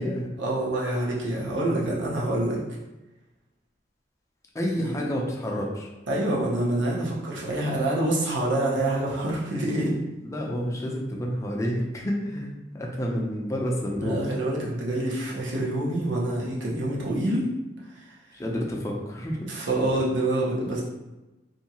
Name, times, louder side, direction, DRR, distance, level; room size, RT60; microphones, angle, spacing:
voice 1, 0.4-2.6 4.7-4.9 6.1-9.9 14.0-17.5 17.9-18.1 19.4-20.8, right 1 dB, 85° right, -4 dB, 0.8 m, -26 dB
voice 2, 4.5-5.9 10.2-12.5 12.7-14.1 18.3-19.5, equal, 15° left, -1 dB, 0.5 m, -29 dB
2.6 x 2.3 x 2.8 m, 1.1 s
head